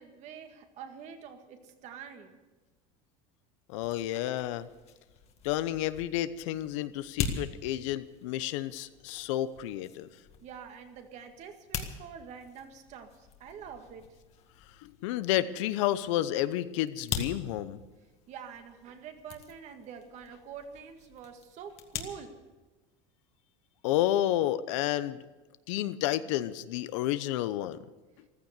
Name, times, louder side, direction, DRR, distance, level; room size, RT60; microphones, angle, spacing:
voice 1, 0.0-2.4 10.4-14.1 18.3-22.4, right 7 dB, 45° right, 6 dB, 1.9 m, -46 dB
voice 2, 3.7-4.7 5.4-10.1 14.8-17.8 23.8-25.2 25.7-27.8, left 13 dB, 80° left, 14 dB, 0.9 m, -30 dB
sound 1, 3.7-22.0, left 7 dB, 40° left, 1.9 m, -43 dB
15.0 x 13.5 x 6.7 m, 1.2 s
supercardioid pair, 140°, 16 cm